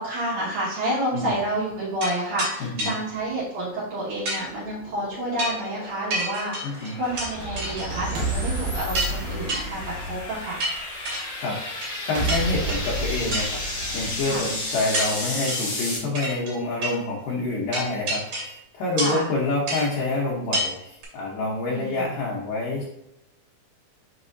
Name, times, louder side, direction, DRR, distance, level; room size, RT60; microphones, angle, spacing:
voice 1, 0.0-10.6 14.2-14.5 17.6-18.0 19.0-19.3 21.6-22.1, right 1 dB, 65° right, -7 dB, 2.9 m, -29 dB
sound 1, 2.0-2.1 2.4-2.5 2.8-2.9 4.3-4.4 5.4-5.6 6.1-7.3 7.6-8.2 8.5-8.6 8.9-9.2 9.5-9.6 10.6-11.2 11.8-12.0 12.3-12.9 13.3-13.5 13.9-14.0 14.9-15.1 15.5-15.7 16.2-16.5 16.8-17.0 17.7-18.6 19.0-19.3 19.7-19.9 20.5-20.7 21.0-21.1, right 1 dB, 45° right, 3.2 m, -28 dB
voice 2, 2.6-2.9 6.6-6.9 11.4-11.6 12.1-13.6 13.9-22.8, left 2 dB, 75° left, -3 dB, 2.1 m, -27 dB
sound 2, 4.3-16.0, left 2 dB, 25° left, 1.6 m, -34 dB
sound 3, 6.9-11.0 12.2-15.0, right 1 dB, 85° right, 1.6 m, -31 dB
6.5 x 5.9 x 2.6 m, 0.86 s
omnidirectional pair, 5.1 m